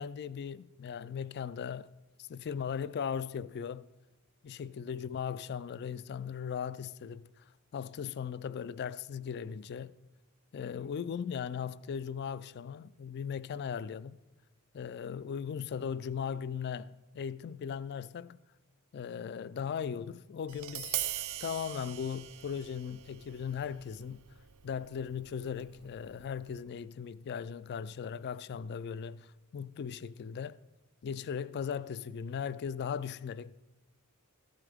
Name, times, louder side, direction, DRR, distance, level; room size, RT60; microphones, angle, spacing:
voice 1, 0.0-1.9 2.2-3.9 4.4-7.4 7.7-9.9 10.5-14.2 14.7-18.4 18.9-21.0 21.4-24.2 24.6-30.6 31.0-33.5, left 7 dB, 50° left, 0.3 m, -38 dB
Tap, 20.5-26.6, right 13 dB, 65° right, 0.5 m, -42 dB
14.0 x 12.0 x 3.5 m
head